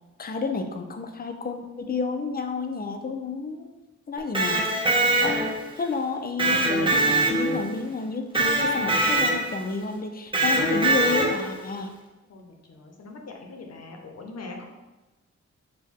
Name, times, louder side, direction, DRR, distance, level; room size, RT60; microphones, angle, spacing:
voice 1, 0.2-3.7 4.1-11.9, left 4 dB, 30° left, 5 dB, 0.4 m, -30 dB
Electric guitar, 4.2-5.7 6.4-7.8 8.3-9.6 10.3-11.6, right 2 dB, 15° right, 0.6 m, -23 dB
voice 2, 12.3-14.6, left 3 dB, 60° left, 2 dB, 0.8 m, -42 dB
6.3 x 2.2 x 3.5 m, 1.1 s
wide cardioid pair, 120°, 29 cm